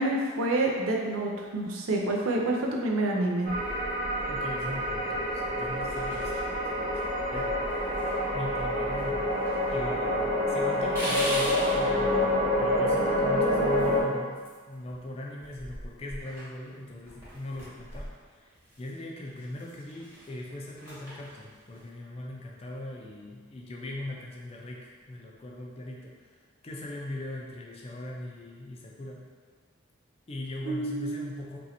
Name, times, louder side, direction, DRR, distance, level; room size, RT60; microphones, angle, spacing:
voice 1, 0.0-3.5 30.7-31.2, right 2 dB, 90° right, 0 dB, 0.5 m, -28 dB
sound 1, 3.5-4.2 4.7-5.1 5.6-6.5 6.9-7.0 7.3-8.7 8.9-9.8 10.1-10.2 10.7-11.8 13.6-15.0 15.3-18.9 19.2-21.9, equal, 10° right, 0.9 m, -41 dB
sound 2, 3.5-14.0, left 1 dB, 35° right, 0.5 m, -27 dB
voice 2, 4.3-7.6 8.3-18.1 18.3-18.5 18.8-26.1 26.6-29.2 30.3-31.6, left 1 dB, 30° left, -1 dB, 0.3 m, -40 dB
3.0 x 2.5 x 2.8 m, 1.6 s
head